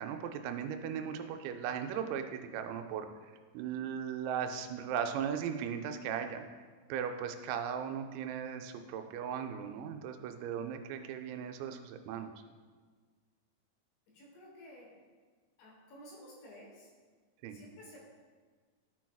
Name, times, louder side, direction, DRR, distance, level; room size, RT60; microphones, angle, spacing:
voice 1, 0.0-3.1 3.5-6.4 6.9-12.3 17.4-17.6, right 8 dB, 90° right, 6 dB, 3.3 m, -37 dB
voice 2, 14.1-14.9 15.6-16.9 17.5-18.0, equal, 70° left, -2 dB, 3.1 m, -53 dB
12.5 x 6.0 x 2.3 m, 1.5 s
omnidirectional pair, 5.9 m